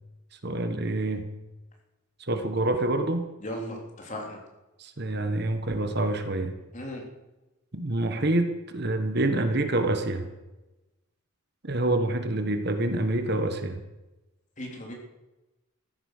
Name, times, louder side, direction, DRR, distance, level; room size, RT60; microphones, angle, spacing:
voice 1, 0.4-1.3 2.3-3.3 4.8-6.6 7.7-10.3 11.6-13.8, right 2 dB, 50° right, 7 dB, 1.3 m, -27 dB
voice 2, 3.4-4.4 6.7-7.0 14.6-14.9, equal, 35° left, 0 dB, 3.6 m, -36 dB
15.0 x 12.0 x 6.6 m, 1.0 s
head